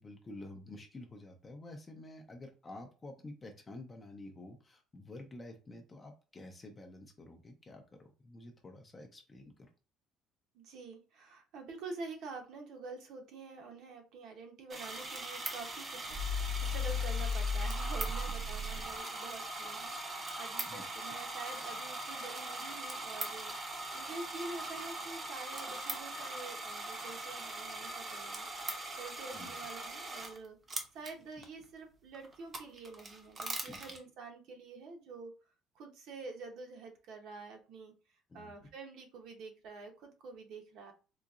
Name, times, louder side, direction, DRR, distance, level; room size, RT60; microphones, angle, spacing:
voice 1, 0.0-9.7 20.7-20.9 29.3-29.5 33.7-33.9 38.3-38.5, left 2 dB, 20° left, 4 dB, 0.5 m, -50 dB
voice 2, 10.5-16.1 16.6-35.3 35.7-37.9 38.3-40.9, right 4 dB, 55° right, 3 dB, 0.8 m, -47 dB
sound 1, 14.7-30.4 30.7-31.4 32.1-34.0, right 2 dB, 25° right, 0.7 m, -41 dB
sound 2, 16.0-19.0, left 4 dB, 70° right, 1.1 m, -35 dB
3.9 x 2.8 x 2.4 m, 0.33 s
cardioid pair, 165°, 0 cm